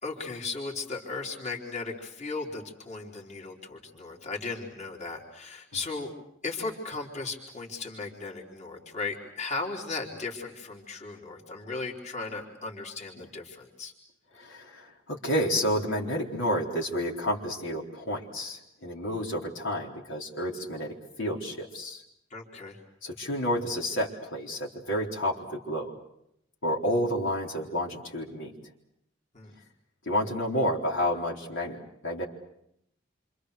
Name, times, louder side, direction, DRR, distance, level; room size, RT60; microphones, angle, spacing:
voice 1, 0.0-6.1 6.4-13.9 22.3-22.8 29.3-29.6, left 3 dB, 40° left, -1 dB, 3.7 m, -36 dB
voice 2, 14.4-22.0 23.0-25.9 26.6-28.5 30.1-32.2, equal, 75° left, -1 dB, 4.1 m, -30 dB
28.0 x 27.0 x 6.6 m, 0.76 s
head